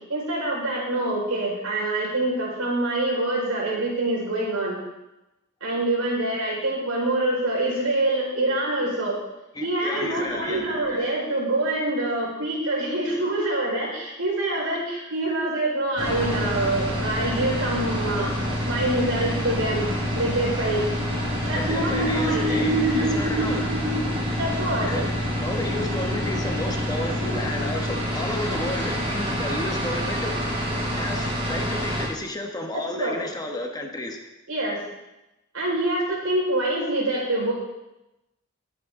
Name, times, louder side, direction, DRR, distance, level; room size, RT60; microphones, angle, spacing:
voice 1, 0.1-4.8 5.6-9.2 9.6-18.3 18.7-19.9 20.1-20.8 21.5-25.0 32.7-33.2 34.5-34.8 35.5-37.5, right 1 dB, 80° right, -3 dB, 4.7 m, -25 dB
voice 2, 9.5-10.7 21.5-23.7 24.9-25.1 25.4-30.6 31.0-34.2, left 1 dB, 20° left, 3 dB, 1.2 m, -32 dB
sound 1, 16.0-32.1, equal, 25° right, 5.0 m, -27 dB
20.0 x 7.8 x 3.7 m, 0.95 s
head